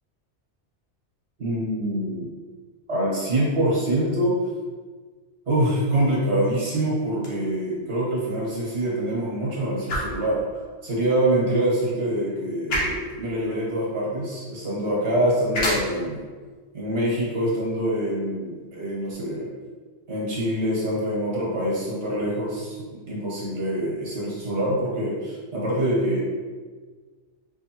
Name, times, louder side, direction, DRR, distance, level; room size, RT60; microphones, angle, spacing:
voice 1, 1.4-2.3 2.9-4.4 5.5-10.4 10.8-16.2 16.7-19.5 20.1-26.2, right 1 dB, 70° right, -6 dB, 1.5 m, -25 dB
sound 1, 7.1-19.1, equal, 75° left, 1.2 m, -35 dB
4.7 x 2.7 x 2.8 m, 1.5 s
omnidirectional pair, 1.2 m